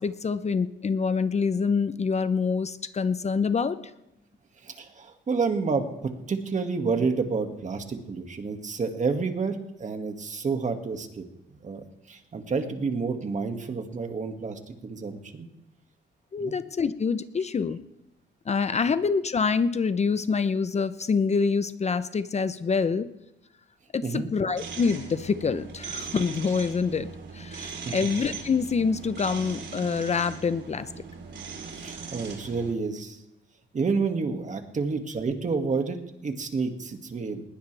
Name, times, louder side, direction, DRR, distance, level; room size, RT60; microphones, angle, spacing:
voice 1, 0.0-3.9 16.3-17.8 18.5-23.1 23.9-31.0, left 5 dB, 35° left, 13 dB, 0.7 m, -26 dB
voice 2, 4.6-11.2 11.5-15.5 16.4-16.5 24.0-24.4 27.6-28.1 31.8-33.2 33.7-36.0 36.2-37.4, right 4 dB, 40° right, 5 dB, 2.1 m, -29 dB
sound 1, 24.6-32.7, right 5 dB, 65° right, 3.9 m, -39 dB
20.5 x 18.0 x 3.4 m, 0.90 s
cardioid pair, 90°, 20 cm